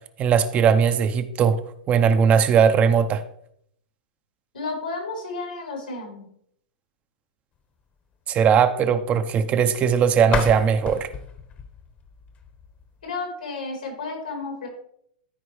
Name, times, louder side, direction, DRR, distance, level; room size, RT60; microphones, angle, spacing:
voice 1, 0.2-1.6 1.9-3.2 8.3-11.1, right 7 dB, 30° right, 10 dB, 0.7 m, -19 dB
voice 2, 4.5-6.3 13.0-14.7, left 3 dB, 90° left, 0 dB, 3.8 m, -32 dB
sound 1, 10.2-13.1, left 5 dB, 30° left, 1.0 m, -32 dB
13.5 x 4.6 x 3.2 m, 0.68 s
hypercardioid pair, 115°, 5 cm